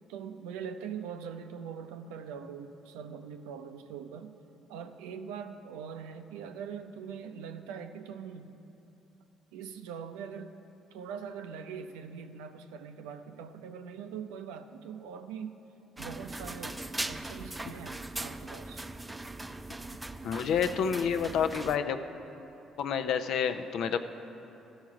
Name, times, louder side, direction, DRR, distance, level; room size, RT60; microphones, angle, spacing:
voice 1, 0.1-4.3 4.7-8.6 9.5-10.5 10.9-15.5 16.0-18.9, right 7 dB, 85° right, 7 dB, 0.5 m, -42 dB
sound 1, 16.0-21.8, right 2 dB, 15° right, 0.5 m, -40 dB
voice 2, 20.2-22.0 22.8-24.0, left 7 dB, 70° left, 9 dB, 0.5 m, -29 dB
14.5 x 6.4 x 4.8 m, 2.9 s
supercardioid pair, 60°, 0 cm